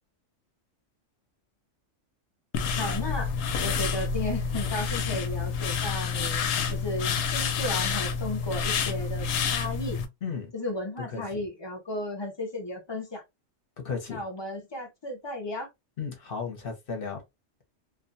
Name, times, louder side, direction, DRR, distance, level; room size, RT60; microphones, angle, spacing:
sound 1, 2.5-10.1, left 6 dB, 90° left, 1.0 m, -28 dB
voice 1, 2.8-3.3 3.6-6.4 6.7-10.0 10.5-13.2 14.1-15.7, left 1 dB, 35° left, 0.4 m, -34 dB
voice 2, 13.8-14.2 16.0-17.2, left 5 dB, 50° left, 0.9 m, -34 dB
2.5 x 2.2 x 2.5 m
omnidirectional pair, 1.3 m